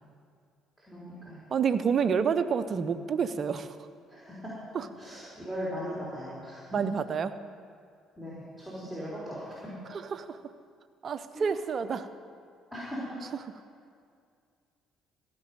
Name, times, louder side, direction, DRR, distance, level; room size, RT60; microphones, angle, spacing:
voice 1, 0.8-1.4 4.1-4.5 5.0-6.8 8.2-9.6 11.3-11.5 12.7-13.2, equal, 5° left, -8 dB, 3.6 m, -39 dB
voice 2, 1.5-3.8 4.7-4.9 6.7-7.3 9.9-10.4 11.0-12.1, right 6 dB, 45° right, 12 dB, 0.6 m, -28 dB
15.5 x 5.4 x 9.2 m, 2.2 s
figure-of-eight pair, 50°, 0 cm